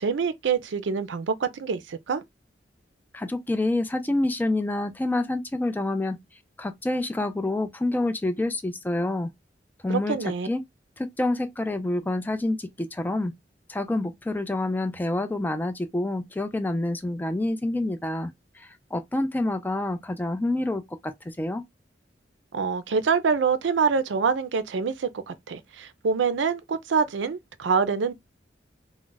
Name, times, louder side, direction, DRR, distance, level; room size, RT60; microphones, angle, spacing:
voice 1, 0.0-2.2 9.9-10.5 22.5-28.1, right 5 dB, 85° right, 0.4 m, -25 dB
voice 2, 3.1-6.2 6.6-9.3 9.8-10.6 11.0-13.3 13.7-18.3 18.6-21.6, left 2 dB, 10° left, 0.3 m, -27 dB
2.3 x 2.1 x 3.8 m
head